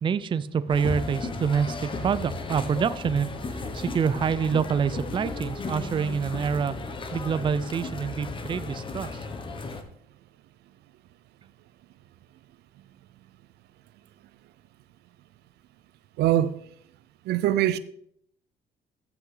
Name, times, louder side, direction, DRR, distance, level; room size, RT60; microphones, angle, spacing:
voice 1, 0.0-3.3 3.7-6.7 7.1-9.1, right 6 dB, 30° right, 0.5 m, -26 dB
sound 1, 0.7-9.8, left 3 dB, 30° left, 1.3 m, -35 dB
voice 2, 16.2-16.6 17.3-17.8, right 13 dB, 75° right, 0.6 m, -22 dB
14.0 x 5.8 x 3.9 m
cardioid pair, 110°, 17 cm